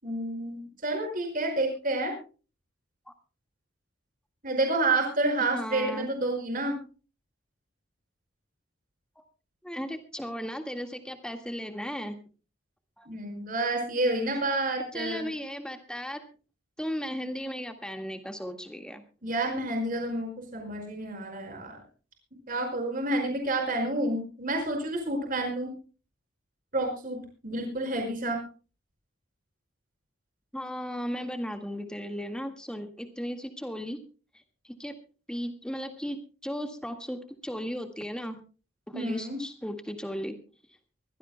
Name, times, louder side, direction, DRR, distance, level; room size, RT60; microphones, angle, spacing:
voice 1, 0.0-2.1 4.4-6.8 13.1-15.3 19.2-21.8 22.5-25.7 26.7-27.2 27.4-28.4 38.9-39.4, right 2 dB, 45° right, 3 dB, 5.4 m, -29 dB
voice 2, 5.5-6.1 9.6-12.2 13.0-13.1 14.9-16.2 16.8-19.0 30.5-34.0 34.6-34.9 35.3-38.4 38.9-40.4, equal, 5° left, 5 dB, 1.8 m, -36 dB
23.5 x 16.5 x 2.2 m, 0.35 s
head